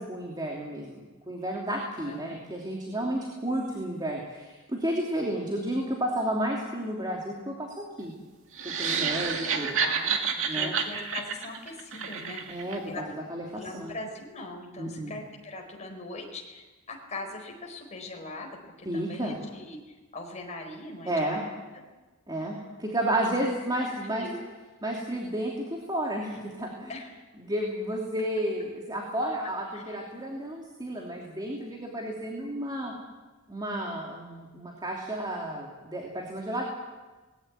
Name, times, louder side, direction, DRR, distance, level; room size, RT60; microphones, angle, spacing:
voice 1, 0.0-8.1 8.6-9.8 10.5-10.7 12.5-12.8 13.3-13.9 14.8-15.1 18.8-19.4 21.1-21.4 22.3-24.3 24.8-26.9 27.4-32.9 33.5-36.6, right 1 dB, 20° right, -1 dB, 3.0 m, -32 dB
voice 2, 1.7-2.4 9.4-13.2 13.5-21.4 21.7-21.8 24.1-24.4 26.9-27.2 29.7-30.0, left 2 dB, 35° left, 2 dB, 4.4 m, -41 dB
sound 1, 8.5-12.8, right 6 dB, 65° right, 2.2 m, -29 dB
20.0 x 17.0 x 9.5 m, 1.2 s
head